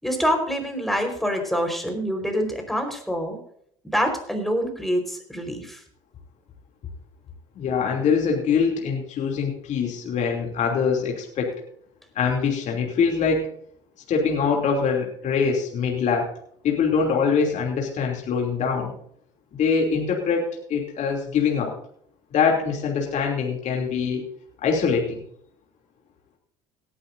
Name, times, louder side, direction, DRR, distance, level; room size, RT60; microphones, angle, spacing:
voice 1, 0.0-3.4 3.8-5.8, equal, ahead, 4 dB, 4.6 m, -26 dB
voice 2, 7.6-11.6 12.1-13.5 14.1-16.3 16.6-18.9 19.5-21.7 22.3-24.3 24.6-25.2, left 5 dB, 50° left, 0 dB, 2.9 m, -23 dB
18.5 x 11.5 x 2.7 m, 0.66 s
supercardioid pair, 80°, 15 cm